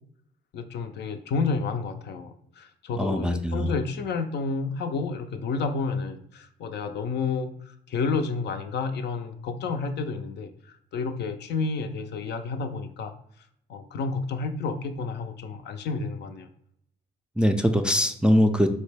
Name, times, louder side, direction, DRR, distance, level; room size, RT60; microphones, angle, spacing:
voice 1, 0.5-10.5 10.9-13.1 13.7-16.5, left 4 dB, 60° left, 7 dB, 0.4 m, -30 dB
voice 2, 3.0-3.7 17.4-18.7, equal, 5° right, 5 dB, 0.3 m, -22 dB
3.8 x 2.1 x 3.3 m, 0.68 s
supercardioid pair, 55°, 20 cm